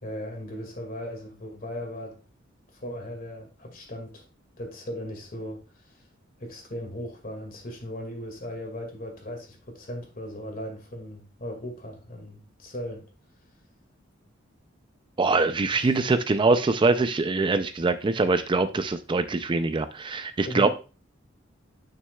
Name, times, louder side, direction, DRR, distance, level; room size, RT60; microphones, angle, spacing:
voice 1, 0.0-2.2 2.7-4.2 4.6-6.0 6.4-13.1 15.7-16.0 20.4-20.7, equal, 45° left, 2.1 m, -37 dB
voice 2, 15.2-20.7, right 3 dB, 25° right, 0.4 m, -23 dB
9.5 x 6.3 x 2.3 m
head